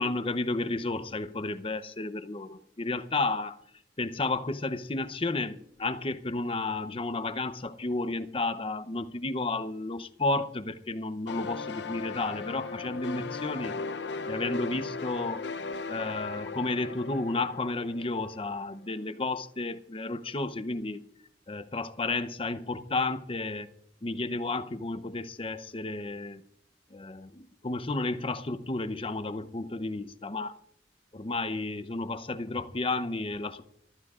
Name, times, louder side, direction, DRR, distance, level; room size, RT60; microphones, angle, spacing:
voice 1, 0.0-3.6 4.0-13.7 14.3-15.5 15.9-21.0 21.5-23.7 24.0-26.4 26.9-30.5 31.1-33.6, left 2 dB, 30° left, 0.7 m, -32 dB
sound 1, 11.3-18.7, left 4 dB, 80° left, 0.7 m, -37 dB
26.0 x 14.5 x 2.5 m
head